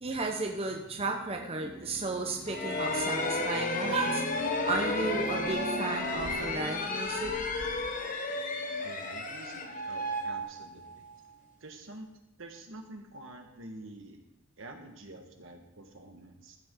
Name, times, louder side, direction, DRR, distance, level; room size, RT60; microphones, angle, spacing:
voice 1, 0.0-7.9, right 3 dB, 30° right, 2 dB, 0.8 m, -34 dB
sound 1, 2.1-6.5 7.0-10.4, left 1 dB, 70° left, 1.7 m, -55 dB
sound 2, 2.5-11.1, left 2 dB, 40° left, 1.0 m, -33 dB
sound 3, 2.8-8.0, equal, 5° left, 2.5 m, -51 dB
voice 2, 8.8-11.0 11.6-12.1 12.4-14.2 14.6-16.6, right 2 dB, 70° right, 4 dB, 1.5 m, -47 dB
13.5 x 8.3 x 3.8 m, 0.87 s
head